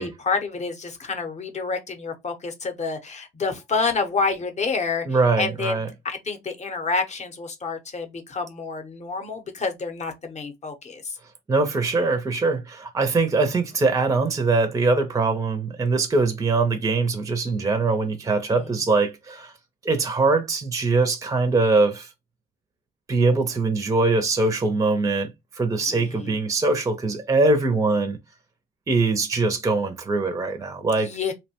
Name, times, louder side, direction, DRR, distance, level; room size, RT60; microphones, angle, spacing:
voice 1, 0.0-11.2 18.5-18.8 25.9-26.4 31.0-31.3, left 4 dB, 35° left, 0.7 m, -29 dB
voice 2, 5.1-5.9 11.5-19.5 19.8-22.1 23.1-28.2 28.9-31.1, right 3 dB, 15° right, 0.5 m, -22 dB
2.7 x 2.1 x 2.7 m
cardioid pair, 90°, 20 cm